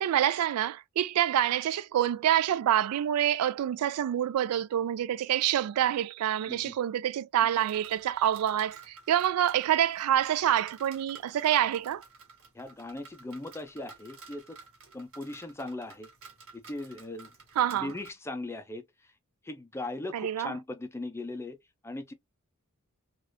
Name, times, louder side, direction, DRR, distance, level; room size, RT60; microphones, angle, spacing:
voice 1, 0.0-12.0 17.6-17.9 20.1-20.5, right 11 dB, 90° right, 0.3 m, -27 dB
sound 1, 7.5-18.1, right 4 dB, 65° right, 1.5 m, -53 dB
voice 2, 12.5-14.6 14.9-16.1 16.5-17.3 17.7-18.8 19.4-21.6 21.8-22.1, left 2 dB, 10° left, 0.4 m, -39 dB
3.3 x 2.3 x 2.6 m
head